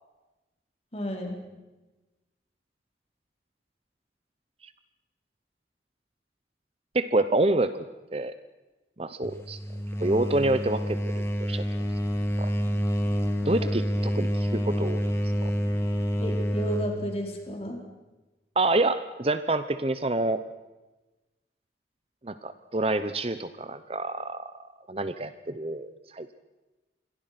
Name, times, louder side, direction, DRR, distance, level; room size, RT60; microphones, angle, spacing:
voice 1, 0.9-1.5 13.6-13.7 16.2-17.8, equal, 35° left, 2 dB, 4.4 m, -32 dB
voice 2, 6.9-7.9 8.1-8.3 9.0-9.6 10.0-11.6 12.4-12.5 13.4-15.1 15.4-15.5 18.6-20.4 22.2-26.3, right 2 dB, 35° right, 12 dB, 0.8 m, -27 dB
sound 1, 9.2-17.0, equal, 15° left, 2.4 m, -28 dB
27.5 x 22.0 x 5.9 m, 1.1 s
head